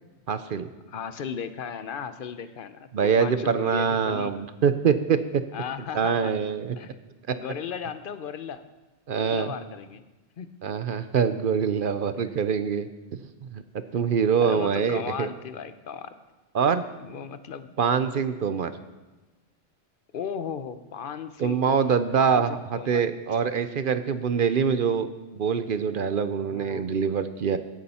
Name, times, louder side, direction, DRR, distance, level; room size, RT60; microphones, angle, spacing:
voice 1, 0.3-0.7 2.9-5.4 5.9-6.8 7.3-7.4 9.1-9.5 10.6-12.9 13.5-13.6 13.9-15.3 16.5-16.8 17.8-18.7 21.4-25.1 25.3-27.6, right 6 dB, 55° right, 11 dB, 0.7 m, -24 dB
voice 2, 0.9-4.3 5.5-6.3 6.8-7.0 7.3-8.7 9.1-10.0 10.4-10.5 14.4-16.1 17.0-17.7 20.1-23.0 26.5-26.9, left 7 dB, 55° left, 11 dB, 0.8 m, -36 dB
15.5 x 9.7 x 4.3 m, 1.1 s
omnidirectional pair, 1.2 m